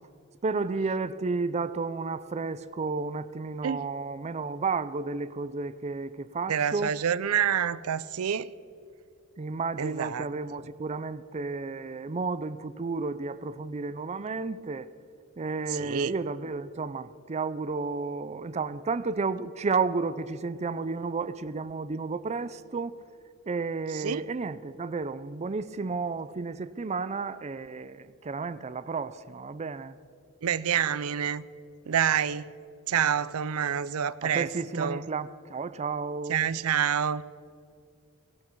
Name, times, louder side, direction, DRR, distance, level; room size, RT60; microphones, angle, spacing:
voice 1, 0.4-6.9 9.4-14.9 15.4-23.0 23.5-30.0 34.2-36.5, right 4 dB, 30° right, 0.5 m, -32 dB
voice 2, 6.5-8.5 9.8-10.3 15.7-16.1 23.9-24.2 30.4-31.4 31.9-32.5 32.9-34.5 34.8-35.1 36.3-37.2, right 8 dB, 80° right, 0.5 m, -27 dB
17.0 x 17.0 x 4.6 m
head